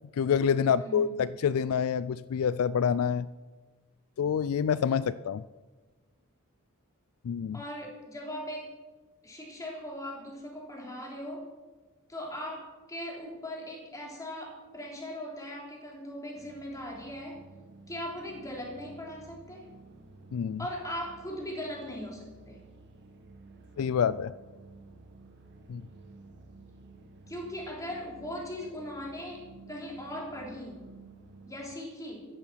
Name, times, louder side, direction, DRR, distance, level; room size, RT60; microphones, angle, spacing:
voice 1, 0.1-3.3 4.2-5.4 7.2-7.6 20.3-20.6 23.8-24.3 25.7-25.8, left 7 dB, 70° left, 16 dB, 0.3 m, -27 dB
voice 2, 0.7-1.1 7.5-8.7 9.2-11.5 12.1-17.4 17.9-19.6 20.6-22.6 27.3-29.4 29.7-30.9 31.5-32.3, left 1 dB, 15° left, -2 dB, 3.5 m, -39 dB
sound 1, 16.3-31.8, right 3 dB, 50° right, 1.4 m, -53 dB
14.5 x 10.5 x 5.7 m, 1.3 s
head